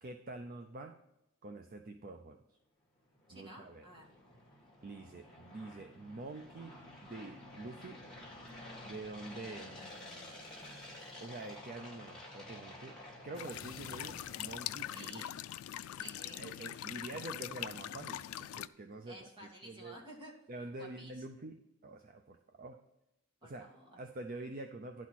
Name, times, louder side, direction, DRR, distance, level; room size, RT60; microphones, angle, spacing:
voice 1, 0.0-1.0 1.4-2.4 3.3-3.8 4.8-8.0 8.8-9.8 11.2-13.0 13.2-15.2 16.2-19.3 19.6-20.0 20.5-22.8 23.4-23.7 24.0-25.1, right 2 dB, 40° right, 5 dB, 0.5 m, -46 dB
sound 1, 3.0-15.3, left 1 dB, 5° left, 2.0 m, -51 dB
voice 2, 3.3-4.1 14.9-15.3 16.0-16.4 19.1-20.3 20.8-21.2 23.4-24.0, right 1 dB, 25° right, -2 dB, 2.1 m, -53 dB
sound 2, 9.8-11.6 13.4-15.4, left 6 dB, 65° left, 0.7 m, -56 dB
sound 3, 13.3-18.7, left 12 dB, 90° left, 0.3 m, -42 dB
11.0 x 4.2 x 6.1 m, 0.87 s
head